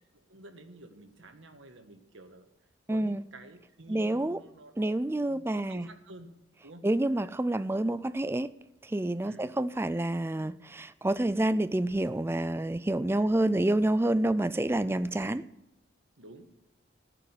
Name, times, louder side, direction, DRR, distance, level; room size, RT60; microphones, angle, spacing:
voice 1, 0.1-2.5 2.9-6.3 6.6-6.9 9.2-9.4 13.1-13.3 15.2-15.4 16.2-16.5, right 1 dB, 85° right, 6 dB, 1.5 m, -51 dB
voice 2, 2.9-3.2 3.9-4.4 4.8-5.9 6.8-8.5 8.8-15.4, right 1 dB, 10° right, 14 dB, 0.3 m, -28 dB
14.0 x 6.7 x 8.2 m, 0.89 s
head